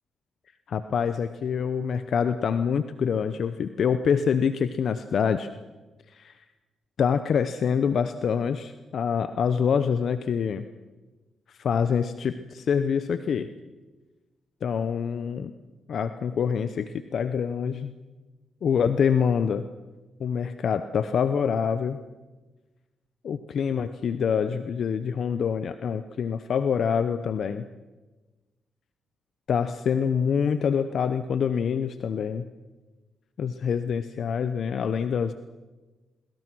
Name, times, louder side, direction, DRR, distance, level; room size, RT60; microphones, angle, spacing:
voice 1, 0.7-5.5 6.1-6.3 7.0-10.6 11.6-13.5 14.6-15.5 15.9-17.9 18.6-19.6 20.2-22.0 23.2-27.6 29.5-32.5 33.4-35.3, left 7 dB, 65° left, 11 dB, 0.8 m, -26 dB
23.5 x 22.5 x 6.2 m, 1.2 s
cardioid pair, 65°, 0 cm